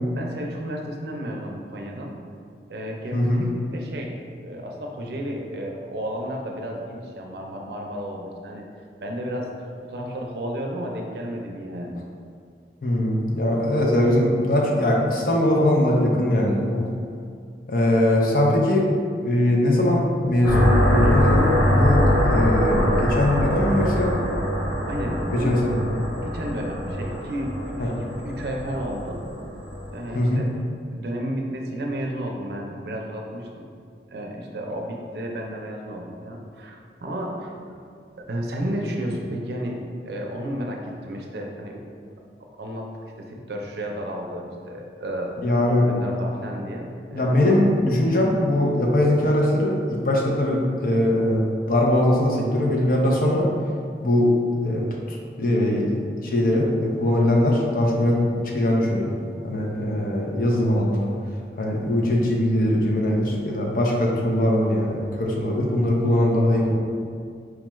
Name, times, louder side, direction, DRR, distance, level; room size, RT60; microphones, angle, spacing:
voice 1, 0.1-2.2 2.7-4.1 4.4-8.7 9.0-11.9 24.6-25.6 26.2-29.2 29.9-30.5 30.9-33.7 34.1-37.6 38.2-41.8 42.6-42.9 43.2-45.3 45.7-47.3, equal, 70° right, 0 dB, 0.5 m, -32 dB
voice 2, 3.1-3.4 12.8-16.9 17.7-18.9 19.2-24.2 25.3-25.8 27.8-27.9 30.1-30.4 45.4-45.9 47.1-53.5 54.0-54.3 54.6-59.1 59.4-61.1 61.6-66.8, left 1 dB, 50° left, -1 dB, 0.5 m, -21 dB
sound 1, 20.4-30.0, equal, 85° left, 0.9 m, -23 dB
4.6 x 2.3 x 3.0 m, 2.2 s
head